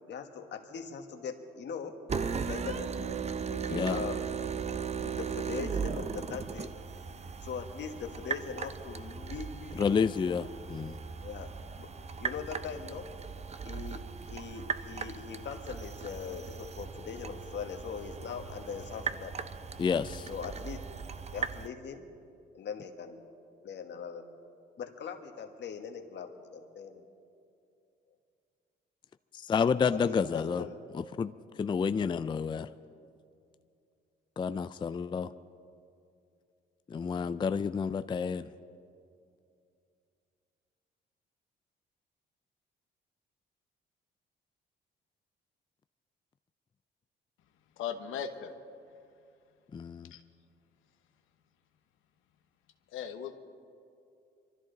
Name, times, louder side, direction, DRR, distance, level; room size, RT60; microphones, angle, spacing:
voice 1, 0.0-1.9 2.5-2.9 3.5-4.2 5.0-6.7 7.4-10.1 11.2-11.9 12.2-13.0 13.6-19.3 20.3-20.8 21.3-22.0 22.5-23.2 23.6-24.2 24.8-27.0 29.9-30.8, left 6 dB, 60° left, 5 dB, 1.5 m, -41 dB
sound 1, 2.1-21.7, right 6 dB, 35° right, 0.6 m, -38 dB
voice 2, 3.7-4.0 9.8-11.0 19.8-20.3 29.3-30.6 30.9-31.3 31.6-32.7 34.4-35.3 36.9-38.5 49.7-50.1, left 6 dB, 25° left, 13 dB, 0.3 m, -30 dB
voice 3, 47.8-48.5 50.1-50.2 52.9-53.4, left 8 dB, 90° left, 7 dB, 0.9 m, -37 dB
23.5 x 13.5 x 3.9 m, 2.5 s
cardioid pair, 90°, 20 cm